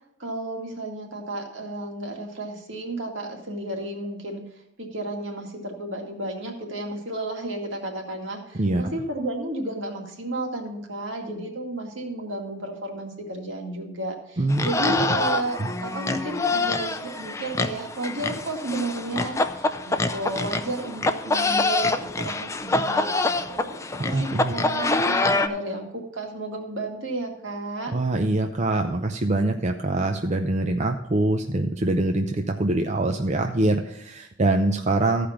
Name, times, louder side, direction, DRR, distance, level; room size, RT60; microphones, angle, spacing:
voice 1, 0.2-4.4 4.8-23.1 23.5-27.9, right 1 dB, 70° right, 2 dB, 2.2 m, -32 dB
sound 1, 14.5-25.5, left 2 dB, 15° left, 0.5 m, -26 dB
voice 2, 24.1-24.5 27.9-35.3, right 2 dB, 35° right, 5 dB, 0.6 m, -24 dB
14.5 x 5.1 x 5.8 m, 0.86 s
head